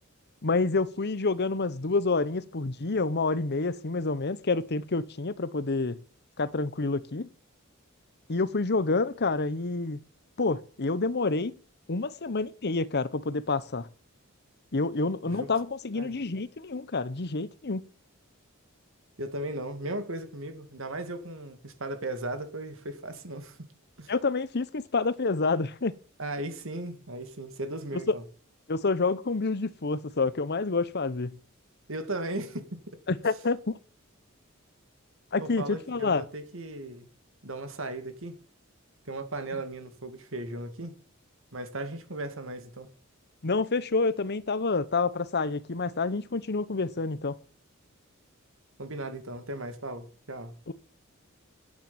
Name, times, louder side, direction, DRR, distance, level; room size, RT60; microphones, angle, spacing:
voice 1, 0.4-6.0 6.4-7.3 8.3-10.0 10.4-11.5 11.9-13.9 14.7-17.8 24.1-25.9 28.1-28.2 28.7-31.4 33.1-33.7 35.3-36.2 43.4-47.4 50.7-50.8, left 3 dB, 50° left, 0.9 m, -28 dB
voice 2, 19.2-23.6 24.0-24.1 26.2-28.2 31.9-32.7 35.4-37.1 37.4-38.3 39.0-40.9 41.5-42.9 48.8-50.6, right 2 dB, 65° right, 2.5 m, -36 dB
10.5 x 9.0 x 9.0 m
head